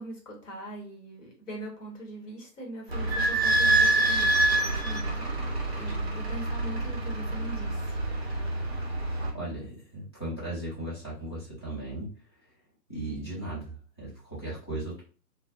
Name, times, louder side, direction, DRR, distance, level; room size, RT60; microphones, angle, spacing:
voice 1, 0.0-8.0, right 1 dB, 50° left, -1 dB, 1.0 m, -42 dB
Idling / Squeak, 2.9-9.3, right 2 dB, 40° right, 0.5 m, -26 dB
voice 2, 9.3-12.1 12.9-15.0, right 1 dB, 15° left, -10 dB, 0.7 m, -37 dB
2.3 x 2.1 x 2.6 m, 0.38 s
figure-of-eight pair, 140°, 50 cm